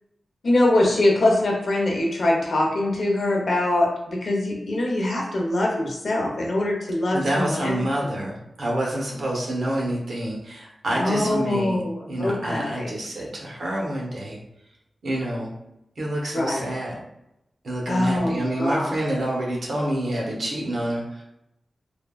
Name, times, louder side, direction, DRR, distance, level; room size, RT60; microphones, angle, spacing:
voice 1, 0.4-7.8 10.9-12.9 16.3-16.7 17.9-18.9, left 1 dB, 65° left, -1 dB, 0.7 m, -23 dB
voice 2, 7.1-14.4 15.0-15.5 16.0-17.0 17.6-21.2, right 1 dB, 80° right, -3 dB, 0.8 m, -27 dB
3.3 x 2.2 x 2.2 m, 0.86 s
wide cardioid pair, 110°, 0 cm